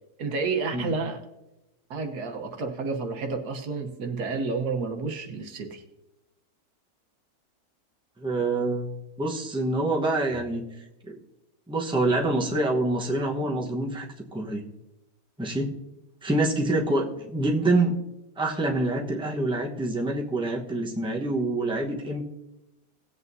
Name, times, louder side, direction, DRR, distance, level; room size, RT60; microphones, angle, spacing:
voice 1, 0.2-1.2 1.9-5.8, right 4 dB, 85° right, 4 dB, 1.7 m, -30 dB
voice 2, 8.2-8.9 9.2-10.6 11.1-11.2 11.7-14.1 14.3-14.6 15.4-15.8 16.2-18.0 18.4-22.2, right 2 dB, 5° right, -1 dB, 0.9 m, -26 dB
18.5 x 8.1 x 2.7 m, 0.95 s
omnidirectional pair, 1.6 m